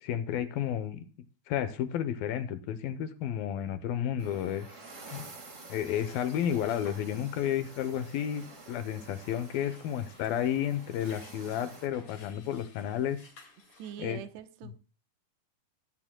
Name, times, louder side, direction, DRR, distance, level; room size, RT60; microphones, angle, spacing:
voice 1, 0.0-1.0 1.5-4.7 5.1-5.3 5.7-13.2 14.0-14.2 14.6-14.7, left 10 dB, 75° left, 2.5 m, -32 dB
sound 1, 4.2-11.9, right 3 dB, 45° right, 0.9 m, -50 dB
sound 2, 5.3-14.0, left 4 dB, 40° left, 2.0 m, -56 dB
voice 2, 13.8-14.8, right 10 dB, 85° right, 3.1 m, -43 dB
19.5 x 8.8 x 2.2 m
omnidirectional pair, 4.7 m